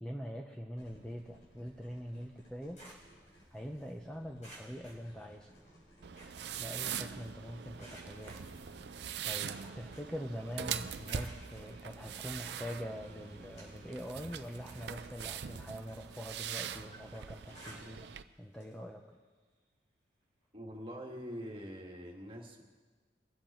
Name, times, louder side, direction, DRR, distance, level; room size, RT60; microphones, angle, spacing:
voice 1, 0.0-2.8 3.5-5.5 6.6-8.4 9.2-18.1 18.4-19.0, equal, 5° left, 1 dB, 0.7 m, -44 dB
sound 1, 0.7-15.1, equal, 70° left, 4.6 m, -59 dB
sound 2, 2.4-3.9 4.4-5.7 6.0-7.3 7.8-10.3 10.6-11.7 12.4-12.5 13.0-14.1 14.4-18.2 18.5-18.8 19.1-19.2 20.4-20.5, right 1 dB, 40° left, 4.4 m, -57 dB
sound 3, 6.0-18.2, right 8 dB, 65° right, 0.5 m, -42 dB
voice 2, 20.5-22.6, equal, 30° right, 0 dB, 1.8 m, -44 dB
23.0 x 8.0 x 4.3 m, 1.4 s
head